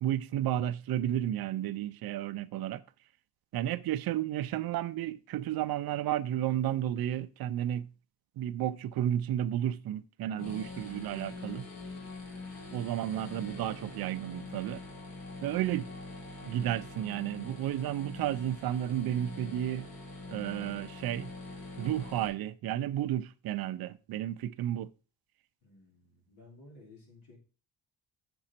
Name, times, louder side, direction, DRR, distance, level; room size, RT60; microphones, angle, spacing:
voice 1, 0.0-2.8 3.5-7.9 8.4-11.7 12.7-14.9 15.4-15.9 16.4-19.9 20.3-21.3 21.8-24.9, right 11 dB, 65° right, 0.5 m, -32 dB
sound 1, 10.4-22.3, left 2 dB, 60° left, 2.6 m, -44 dB
voice 2, 25.6-27.4, left 2 dB, 80° left, 2.7 m, -55 dB
7.7 x 6.1 x 4.3 m
wide cardioid pair, 160°, 40 cm